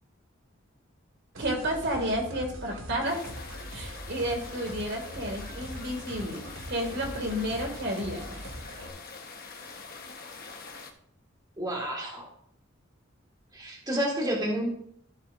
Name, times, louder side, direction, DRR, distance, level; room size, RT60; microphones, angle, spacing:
sound 1, 1.3-8.9, equal, 75° right, 1.7 m, -42 dB
voice 1, 1.4-3.3 3.7-8.3, equal, 55° right, 2 dB, 2.3 m, -31 dB
sound 2, 3.0-10.9, left 4 dB, 50° left, 1.1 m, -44 dB
voice 2, 11.6-12.3 13.5-14.7, equal, 20° right, -1 dB, 1.8 m, -30 dB
14.0 x 7.6 x 2.6 m, 0.66 s
head